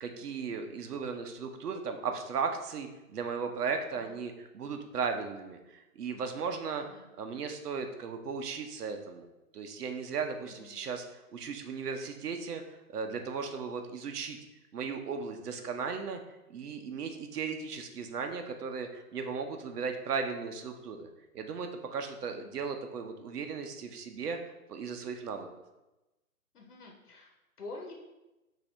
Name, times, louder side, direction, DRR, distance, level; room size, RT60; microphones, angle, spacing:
voice 1, 0.0-9.3 9.5-14.4 14.7-16.2 16.5-21.1 21.3-25.5, right 5 dB, 85° right, 6 dB, 0.8 m, -36 dB
voice 2, 26.5-27.9, left 2 dB, 80° left, 0 dB, 1.1 m, -47 dB
5.0 x 2.8 x 3.4 m, 1.0 s
hypercardioid pair, 165°, 45 cm